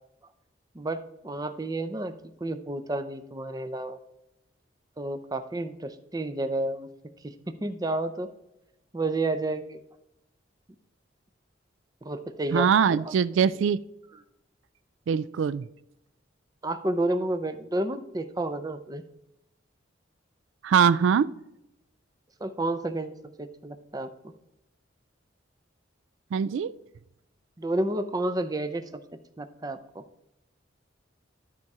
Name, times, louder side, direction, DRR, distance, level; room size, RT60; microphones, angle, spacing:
voice 1, 0.7-2.1 2.4-4.0 5.0-6.9 7.2-8.3 8.9-9.8 12.0-13.0 16.6-19.0 22.4-23.1 23.4-24.3 27.6-28.8 29.4-30.0, right 2 dB, 20° right, 0.5 m, -30 dB
voice 2, 12.5-13.8 15.1-15.7 20.6-21.3 26.3-26.7, right 7 dB, 85° right, 0.3 m, -22 dB
12.5 x 4.3 x 4.7 m
head